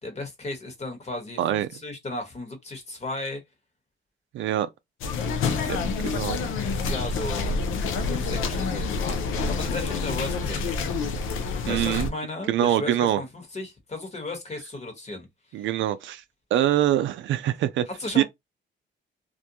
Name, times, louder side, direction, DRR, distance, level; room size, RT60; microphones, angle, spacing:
voice 1, 0.0-3.4 5.4-5.6 6.8-10.8 11.6-15.3 15.6-15.7 17.9-18.2, left 2 dB, 35° left, 1.2 m, -35 dB
voice 2, 1.4-1.7 4.3-4.7 5.7-6.4 11.7-12.1 12.5-13.2 15.5-16.2 16.5-17.9 18.2-18.3, right 12 dB, 70° right, 0.4 m, -24 dB
sound 1, 5.0-12.1, left 4 dB, 85° left, 0.5 m, -27 dB
2.5 x 2.2 x 2.8 m
cardioid pair, 90°, 20 cm